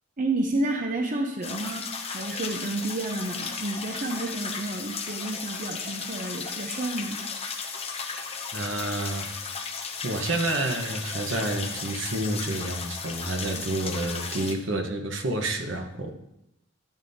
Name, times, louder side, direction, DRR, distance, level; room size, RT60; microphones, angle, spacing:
voice 1, 0.2-7.2 13.5-13.6, right 2 dB, 40° right, 2 dB, 0.7 m, -30 dB
sound 1, 1.4-14.5, left 5 dB, 30° left, 0.9 m, -35 dB
voice 2, 8.5-9.3 9.6-9.7 10.0-16.1, right 2 dB, 70° right, 4 dB, 1.1 m, -29 dB
13.0 x 7.4 x 2.8 m, 0.86 s
head